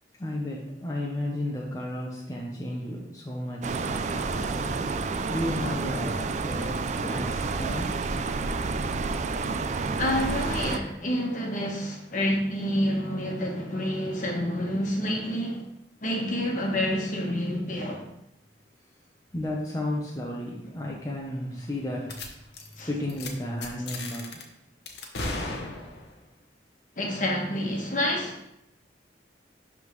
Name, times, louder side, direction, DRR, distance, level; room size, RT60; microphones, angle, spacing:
voice 1, 0.2-5.0 5.3-8.0 19.3-22.5 22.8-24.4, left 1 dB, 20° left, -3 dB, 0.8 m, -33 dB
sound 1, 3.6-10.8, right 4 dB, 40° right, 0.3 m, -29 dB
voice 2, 10.0-15.6 16.0-18.0 22.8-22.9 27.0-28.5, equal, 45° left, 0 dB, 1.3 m, -28 dB
sound 2, 22.1-22.3 22.5-22.8 23.1-23.3 23.6-24.4 24.9-26.2, left 2 dB, 75° left, 0.9 m, -35 dB
11.0 x 3.6 x 3.1 m, 0.80 s
head